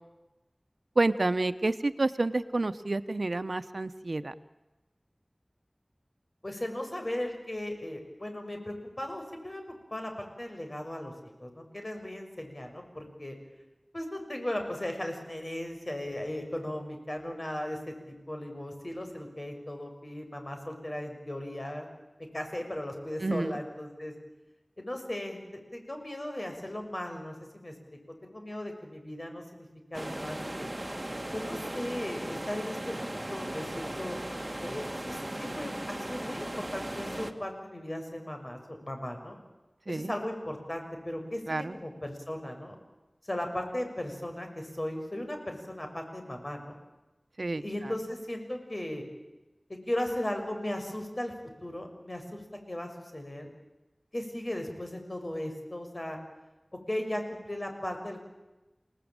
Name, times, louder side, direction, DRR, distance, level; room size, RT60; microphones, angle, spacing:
voice 1, 1.0-4.3 23.2-23.6 39.9-40.1 41.5-41.7 47.4-47.6, right 2 dB, 85° right, 12 dB, 1.0 m, -29 dB
voice 2, 6.4-9.6 9.9-11.1 11.4-13.4 13.9-17.8 18.1-21.9 22.3-24.1 24.8-27.7 28.2-30.7 31.3-34.2 34.6-39.4 39.9-42.8 43.2-46.8 47.5-49.0 49.7-51.3 51.6-52.4 52.7-53.5 54.1-56.2 56.9-58.2, left 1 dB, 45° left, 4 dB, 6.3 m, -37 dB
sound 1, 29.9-37.3, right 1 dB, 30° right, 2.1 m, -37 dB
29.5 x 19.0 x 9.0 m, 1.1 s
wide cardioid pair, 45°, 0 cm